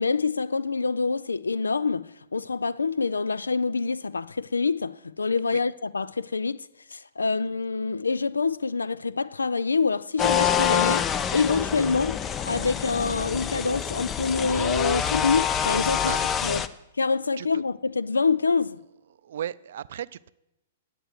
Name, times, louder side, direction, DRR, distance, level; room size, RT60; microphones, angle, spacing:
voice 1, 0.0-6.7 6.9-11.0 11.3-16.1 16.4-16.7 17.0-18.8, left 4 dB, 85° left, 0.3 m, -26 dB
sound 1, 10.2-16.7, left 8 dB, 25° left, 0.6 m, -26 dB
voice 2, 19.2-20.3, right 10 dB, 65° right, 0.4 m, -35 dB
10.0 x 9.2 x 6.5 m
hypercardioid pair, 115°, 0 cm